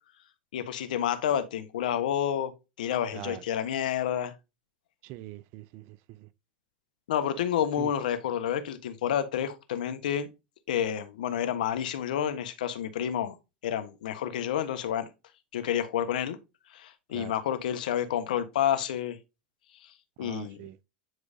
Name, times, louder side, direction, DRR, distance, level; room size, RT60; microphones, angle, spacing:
voice 1, 0.5-2.5 2.8-4.3 7.1-10.3 10.7-13.4 13.6-15.1 15.5-16.4 16.7-19.2 19.8-19.9 20.2-20.6, left 9 dB, 80° left, 1.2 m, -29 dB
voice 2, 3.1-3.4 5.0-6.3 7.8-7.9 17.1-17.4 20.2-20.8, right 15 dB, 55° right, 0.6 m, -42 dB
9.5 x 4.8 x 2.7 m
hypercardioid pair, 105°, 4 cm